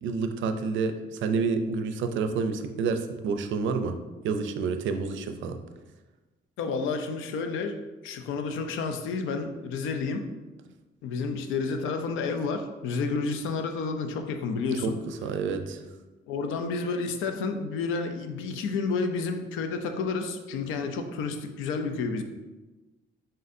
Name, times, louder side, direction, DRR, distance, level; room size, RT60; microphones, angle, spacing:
voice 1, 0.0-4.0 4.2-5.6 14.8-14.9 15.2-15.8, right 5 dB, 75° right, 8 dB, 0.4 m, -29 dB
voice 2, 6.6-10.3 11.0-15.0 16.3-22.2, left 4 dB, 90° left, 6 dB, 0.5 m, -30 dB
4.1 x 3.7 x 2.6 m, 1.2 s
cardioid pair, 90°, 20 cm